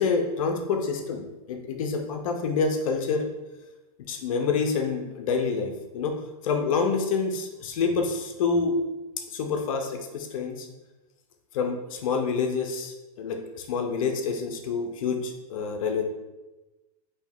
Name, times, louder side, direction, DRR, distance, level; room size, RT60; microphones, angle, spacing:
voice 1, 0.0-3.3 4.1-8.8 9.3-10.7 11.5-16.1, left 5 dB, 60° left, 4 dB, 0.5 m, -27 dB
3.2 x 2.7 x 3.5 m, 1.1 s
supercardioid pair, 155°, 19 cm